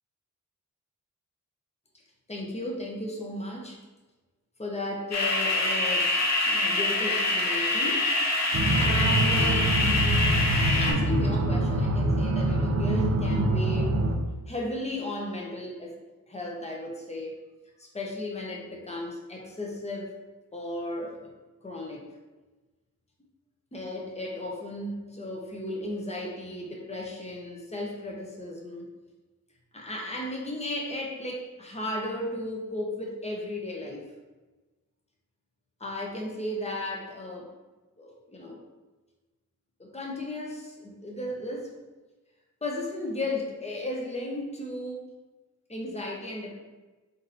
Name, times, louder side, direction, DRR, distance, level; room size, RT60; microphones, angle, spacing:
voice 1, 2.3-3.8 4.6-6.1 6.5-8.1 8.7-9.8 10.7-14.0 14.5-16.0 16.3-17.4 17.8-20.1 20.5-21.3 21.6-22.2 23.7-28.9 29.7-34.1 35.8-37.5 38.0-38.6 39.8-41.8 42.6-45.1 45.7-46.6, left 1 dB, 20° left, -1 dB, 0.9 m, -35 dB
sound 1, 5.1-10.9, left 2 dB, 55° left, 1.1 m, -25 dB
sound 2, 8.5-14.2, right 1 dB, 45° right, 0.5 m, -25 dB
3.8 x 2.7 x 4.0 m, 1.2 s
wide cardioid pair, 85°, 32 cm